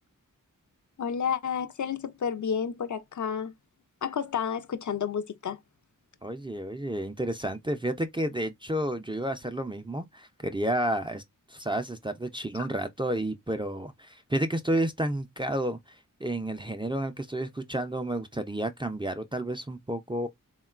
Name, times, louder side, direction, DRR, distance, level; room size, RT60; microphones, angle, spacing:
voice 1, 1.0-3.5 4.0-5.6, left 7 dB, 60° left, 0.4 m, -30 dB
voice 2, 6.2-11.2 11.5-20.3, right 1 dB, 15° right, 0.3 m, -31 dB
3.6 x 2.2 x 2.3 m
wide cardioid pair, 85°, 33 cm